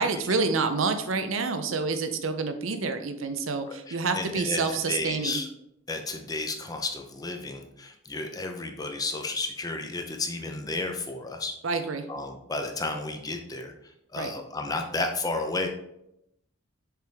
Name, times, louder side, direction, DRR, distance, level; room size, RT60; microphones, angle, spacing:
voice 1, 0.0-5.4 11.6-12.0 14.2-14.3, right 4 dB, 75° right, 8 dB, 0.7 m, -28 dB
voice 2, 3.7-5.5 5.9-11.5 12.1-13.7 14.1-15.7, left 3 dB, 20° left, 4 dB, 0.7 m, -32 dB
6.6 x 4.9 x 3.4 m, 0.79 s
head